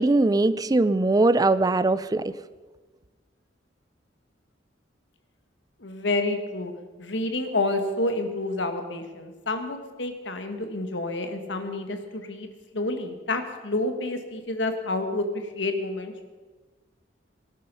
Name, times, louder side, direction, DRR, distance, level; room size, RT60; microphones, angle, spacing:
voice 1, 0.0-2.3, right 2 dB, 20° right, 14 dB, 0.4 m, -21 dB
voice 2, 5.8-6.7 7.0-16.3, left 2 dB, 80° left, 7 dB, 1.7 m, -29 dB
18.5 x 11.0 x 5.5 m, 1.3 s
head